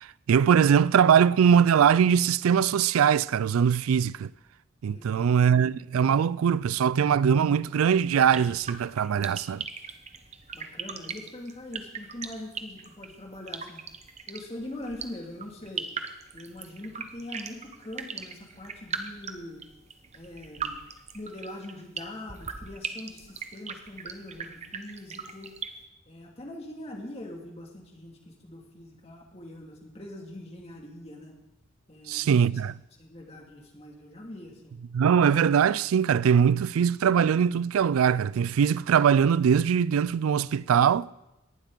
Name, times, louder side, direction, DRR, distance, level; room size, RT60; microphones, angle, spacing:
voice 1, 0.0-4.3 4.8-9.7 32.1-32.7 34.9-41.1, right 7 dB, 90° right, 0.4 m, -22 dB
voice 2, 4.9-5.3 10.5-13.9 14.3-15.9 16.3-19.6 20.1-20.8 21.1-25.5 26.1-31.4 31.9-32.6 33.0-34.8, left 1 dB, 30° left, 2.4 m, -42 dB
sound 1, 8.0-25.7, right 6 dB, 30° right, 0.8 m, -39 dB
18.0 x 12.0 x 3.9 m
head